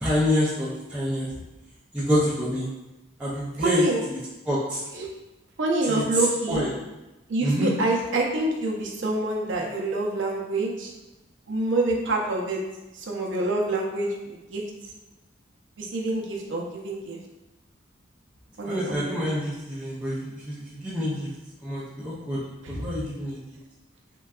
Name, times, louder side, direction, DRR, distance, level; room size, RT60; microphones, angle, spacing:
voice 1, 0.0-1.3 1.9-2.7 3.2-4.2 4.5-4.8 5.8-6.7 7.4-7.7 18.6-21.3 21.6-22.4 22.8-23.4, equal, 5° right, -11 dB, 0.4 m, -27 dB
voice 2, 3.6-4.0 4.9-5.1 5.6-6.6 7.3-10.9 11.5-12.6 12.9-14.6 15.8-17.2 18.6-18.9 22.6-22.9, right 2 dB, 75° right, -1 dB, 0.6 m, -26 dB
3.7 x 2.2 x 2.3 m, 1.0 s
head